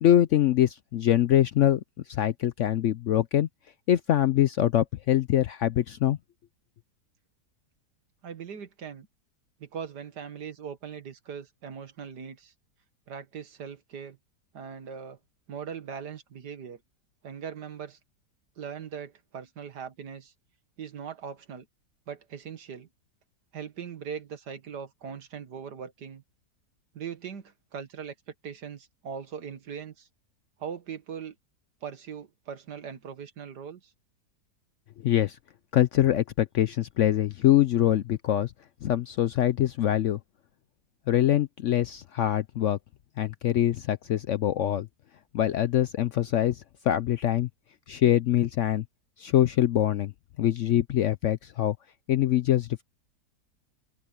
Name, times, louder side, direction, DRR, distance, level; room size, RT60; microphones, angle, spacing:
voice 1, 0.0-1.8 2.1-3.5 3.9-6.2 35.0-35.4 35.7-38.5 38.8-40.2 41.1-42.8 43.2-44.9 45.3-47.5 47.9-48.8 49.2-50.1 50.4-51.8 52.1-52.8, left 12 dB, 70° left, 0.7 m, -24 dB
voice 2, 8.2-9.1 9.6-12.5 13.1-14.2 14.5-15.2 15.5-16.8 17.2-18.0 18.6-20.3 20.8-21.7 22.1-22.9 23.5-26.2 26.9-30.1 30.6-31.4 31.8-33.9, right 7 dB, 85° right, 2.1 m, -40 dB
open air
omnidirectional pair, 1.7 m